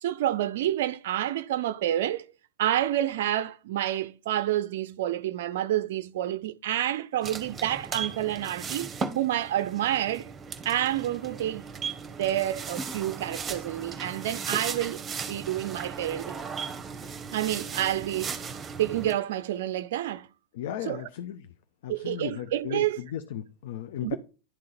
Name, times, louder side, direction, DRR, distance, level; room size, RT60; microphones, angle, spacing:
voice 1, 0.0-2.3 2.6-10.3 10.6-11.7 12.2-15.0 15.3-16.4 17.3-18.5 18.8-20.3 20.9-21.1 21.9-23.0 24.0-24.2, right 12 dB, 55° right, 0.4 m, -29 dB
sound 1, 7.2-19.1, right 5 dB, 20° right, 0.9 m, -37 dB
voice 2, 20.5-21.5 21.8-24.2, left 10 dB, 55° left, 0.5 m, -36 dB
11.0 x 3.7 x 4.1 m
figure-of-eight pair, 90°, 0 cm